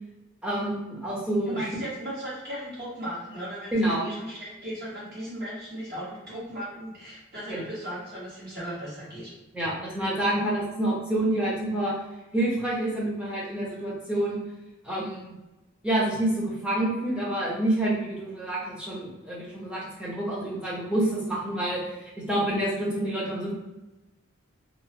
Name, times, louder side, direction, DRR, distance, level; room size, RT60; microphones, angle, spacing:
voice 1, 0.4-1.7 3.7-4.0 7.5-7.6 9.5-11.9 12.3-14.4 14.8-15.3 15.8-23.5, right 1 dB, 5° right, -7 dB, 0.7 m, -28 dB
voice 2, 1.5-9.3 9.8-10.0 10.3-10.4, equal, 45° right, -9 dB, 1.3 m, -37 dB
2.9 x 2.2 x 2.6 m, 1.0 s
head